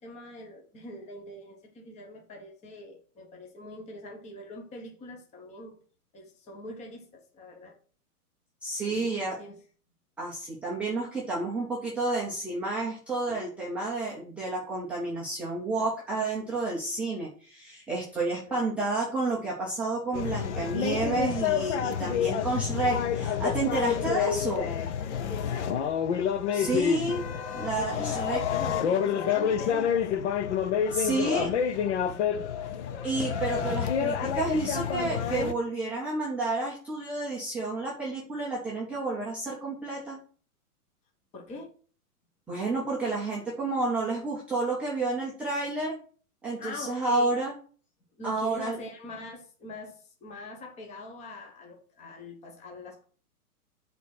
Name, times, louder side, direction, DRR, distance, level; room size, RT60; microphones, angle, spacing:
voice 1, 0.0-5.8 6.1-7.8 8.8-9.6 13.3-13.4 18.5-18.6 24.0-24.5 25.3-25.8 27.8-28.2 28.5-30.0 30.9-32.6 41.3-41.7 46.6-47.4 48.2-53.0, left 2 dB, 15° left, 1.2 m, -43 dB
voice 2, 8.6-9.4 10.2-24.7 26.5-27.2 27.5-28.4 30.9-31.5 33.0-40.2 42.5-46.0 46.4-47.5 48.2-48.8, right 2 dB, 5° right, 0.5 m, -30 dB
sound 1, 20.1-35.5, left 8 dB, 50° left, 0.8 m, -28 dB
8.1 x 3.8 x 5.9 m
hypercardioid pair, 145°, 45 cm